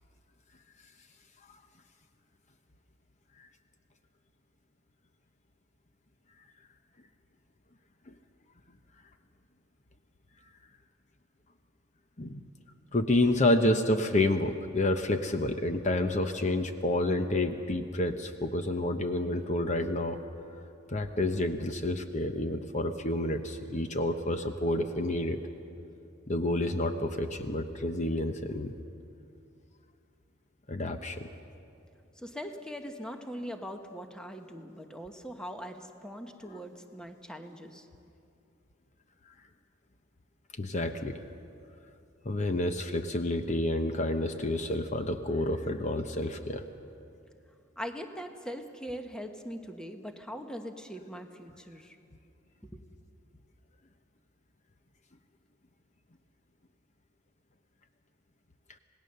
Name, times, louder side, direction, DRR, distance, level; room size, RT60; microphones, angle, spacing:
voice 1, 12.9-20.2 20.9-25.4 26.3-28.7 30.7-31.3 40.6-41.2 42.2-46.6, left 1 dB, 40° left, 7 dB, 0.9 m, -29 dB
voice 2, 32.2-37.9 47.8-52.0 52.7-52.8, equal, 5° left, 5 dB, 1.1 m, -41 dB
26.5 x 18.5 x 6.8 m, 2.6 s
head